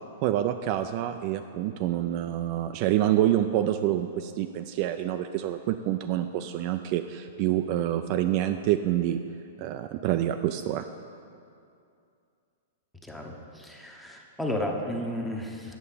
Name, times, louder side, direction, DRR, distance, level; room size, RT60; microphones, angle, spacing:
voice 1, 0.2-9.2 9.6-10.8, right 12 dB, 40° right, 8 dB, 0.3 m, -27 dB
voice 2, 13.6-15.8, left 1 dB, 5° left, 0 dB, 0.9 m, -32 dB
8.4 x 6.7 x 5.6 m, 2.5 s
hypercardioid pair, 145°, 0 cm